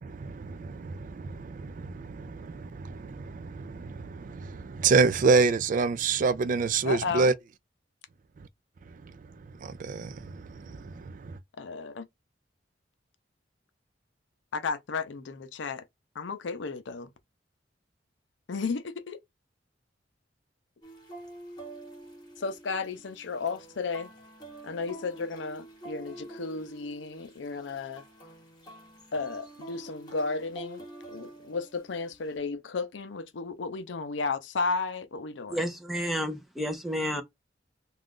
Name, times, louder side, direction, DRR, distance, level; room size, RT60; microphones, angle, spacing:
voice 1, 0.0-7.3 9.0-9.1 9.6-11.4, right 4 dB, 45° right, 0.3 m, -28 dB
voice 2, 6.8-7.3 11.6-12.1 14.5-15.8 16.2-17.1 18.5-19.2 22.4-24.1 24.6-28.0 29.1-35.6, left 4 dB, 80° left, 0.5 m, -34 dB
sound 1, 20.8-32.4, right 2 dB, 25° left, 1.2 m, -47 dB
voice 3, 35.5-37.2, equal, ahead, 0.6 m, -31 dB
2.4 x 2.3 x 3.5 m
head